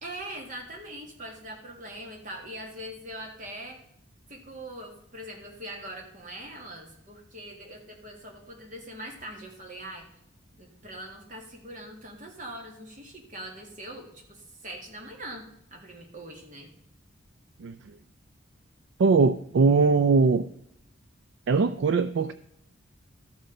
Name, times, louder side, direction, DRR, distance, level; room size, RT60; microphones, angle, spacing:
voice 1, 0.0-3.8 4.3-10.1 10.6-16.7, right 1 dB, 40° right, 1 dB, 1.9 m, -42 dB
voice 2, 19.0-20.5 21.5-22.3, right 4 dB, 60° right, 13 dB, 0.3 m, -21 dB
13.0 x 6.5 x 5.4 m, 0.74 s
head